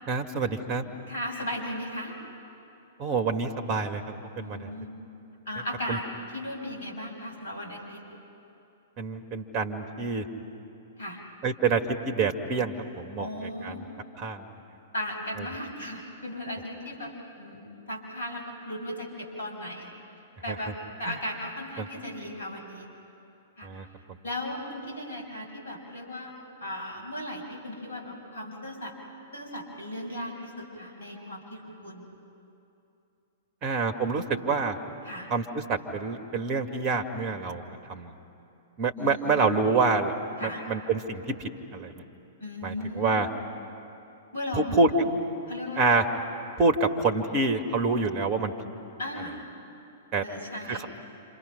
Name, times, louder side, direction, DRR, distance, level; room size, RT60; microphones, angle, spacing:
voice 1, 0.1-0.9 3.0-4.0 4.4-4.7 5.9-6.0 9.0-10.2 11.4-13.8 14.2-14.4 20.5-20.6 21.0-21.2 21.8-21.9 23.6-23.9 33.6-34.8 35.3-37.6 37.9-38.1 38.8-40.1 40.4-41.9 42.6-43.3 44.5-44.9 45.8-46.0 46.6-48.5 50.1-50.2 50.7-50.8, right 4 dB, 30° right, 9 dB, 1.6 m, -27 dB
voice 2, 1.1-2.2 4.4-4.9 5.4-6.0 6.3-8.0 11.0-11.2 13.2-13.8 14.9-19.9 20.4-20.7 21.0-22.9 23.6-23.7 24.2-26.3 26.6-28.9 29.3-32.1 35.0-35.3 39.0-39.5 40.4-40.6 42.4-43.2 44.3-44.8 45.5-45.8 49.0-49.5 50.2-50.9, left 1 dB, 65° left, 0 dB, 6.5 m, -36 dB
28.5 x 27.0 x 5.8 m, 2.8 s
figure-of-eight pair, 105°, 0 cm